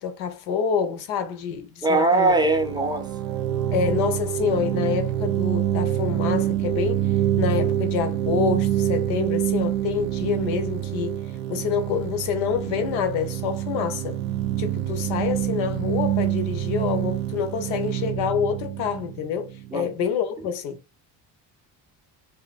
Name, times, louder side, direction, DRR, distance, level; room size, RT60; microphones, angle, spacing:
voice 1, 0.0-2.3 3.7-7.0 7.4-11.2 11.5-14.2 14.6-20.8, left 7 dB, 80° left, 0.7 m, -27 dB
voice 2, 1.8-3.1 15.0-15.2 19.7-19.9 20.4-20.5, right 3 dB, 10° right, 0.5 m, -21 dB
sound 1, 2.3-19.9, right 12 dB, 85° right, 0.6 m, -26 dB
2.7 x 2.4 x 2.4 m
supercardioid pair, 65°, 47 cm